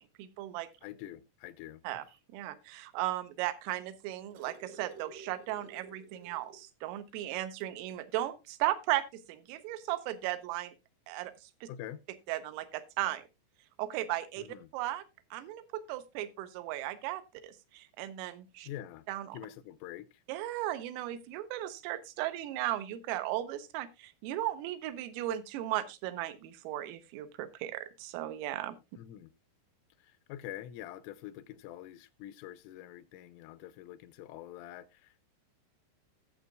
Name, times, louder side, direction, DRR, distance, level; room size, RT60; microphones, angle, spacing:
voice 1, 0.0-0.7 1.8-2.0 2.3-10.7 11.1-11.7 12.3-13.2 13.8-14.4 14.7-15.0 15.3-18.7 19.1-19.4 20.3-28.8, right 14 dB, 90° right, 3.4 m, -36 dB
voice 2, 0.8-1.8 11.7-12.0 14.4-14.7 18.6-19.0 19.3-20.2 29.0-29.3 30.0-35.3, left 12 dB, 85° left, 3.1 m, -46 dB
sound 1, 3.8-6.7 7.1-7.2 7.6-7.8 8.9-9.0, right 4 dB, 70° right, 2.1 m, -52 dB
18.0 x 6.9 x 2.3 m
omnidirectional pair, 5.7 m